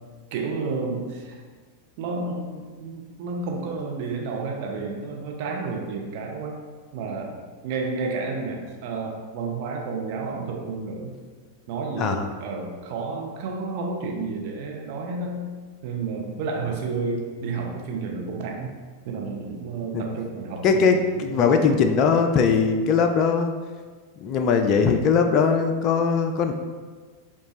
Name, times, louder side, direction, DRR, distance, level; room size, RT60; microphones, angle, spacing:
voice 1, 0.3-1.4 2.0-6.5 6.9-11.1 11.7-15.5 15.8-18.8 19.0-21.7, right 4 dB, 45° right, 0 dB, 0.7 m, -31 dB
voice 2, 20.6-23.5 24.2-26.5, left 5 dB, 35° left, 5 dB, 0.3 m, -20 dB
5.0 x 2.4 x 3.1 m, 1.5 s
figure-of-eight pair, 90°, 0 cm